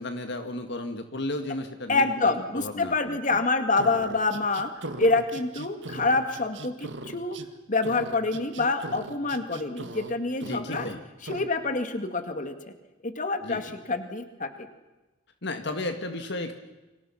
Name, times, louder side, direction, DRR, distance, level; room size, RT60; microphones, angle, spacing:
voice 1, 0.0-3.4 3.8-3.9 10.4-11.0 13.4-13.6 15.4-16.5, left 2 dB, 60° left, 6 dB, 1.9 m, -34 dB
voice 2, 1.9-4.7 5.0-7.4 7.7-10.9 11.2-12.5 13.0-14.5, left 3 dB, 40° left, 7 dB, 2.2 m, -26 dB
sound 1, 3.8-7.5 7.8-10.1 10.4-10.9 11.3-11.5, right 2 dB, 65° right, 1.9 m, -39 dB
30.0 x 25.5 x 5.8 m, 1.1 s
head